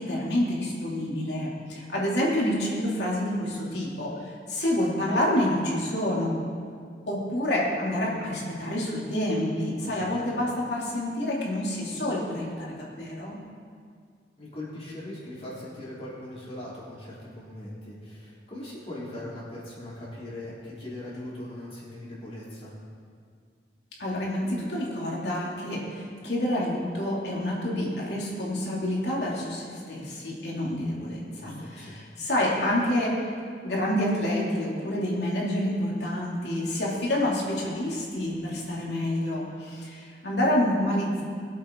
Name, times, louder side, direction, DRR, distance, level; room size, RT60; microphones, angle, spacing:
voice 1, 0.0-6.4 7.1-13.4 24.0-33.3 33.6-41.2, left 1 dB, 75° left, -4 dB, 3.0 m, -28 dB
voice 2, 14.4-22.7 31.3-31.9, left 1 dB, 35° left, -8 dB, 4.0 m, -40 dB
21.5 x 8.3 x 3.9 m, 2.1 s
head